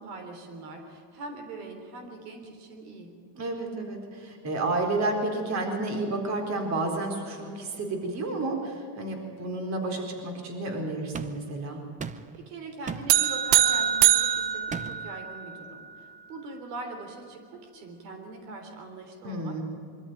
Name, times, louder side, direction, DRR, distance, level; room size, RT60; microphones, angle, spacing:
voice 1, 0.0-3.2 12.3-19.6, right 3 dB, 85° right, 5 dB, 3.8 m, -42 dB
voice 2, 3.3-11.8 19.2-19.6, right 2 dB, 35° right, 3 dB, 4.1 m, -31 dB
sound 1, 11.1-11.5 12.0-12.4 12.9-13.2 14.7-15.2, right 6 dB, 15° right, 0.6 m, -36 dB
sound 2, 13.1-15.6, right 11 dB, 55° right, 1.4 m, -23 dB
23.5 x 13.5 x 9.3 m, 2.4 s
supercardioid pair, 135°, 45 cm